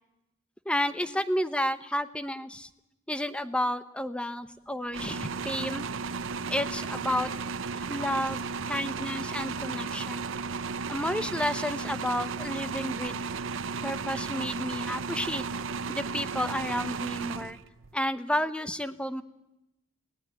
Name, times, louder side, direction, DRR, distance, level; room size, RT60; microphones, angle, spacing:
voice 1, 0.6-2.7 3.1-5.8 6.5-7.3 7.7-8.4 8.7-10.2 10.9-13.2 13.8-15.4 15.9-17.6 17.9-19.2, left 1 dB, 5° left, 12 dB, 0.9 m, -31 dB
sound 1, 4.9-17.9, right 5 dB, 65° right, 0.8 m, -34 dB
19.5 x 18.5 x 9.0 m, 0.91 s
head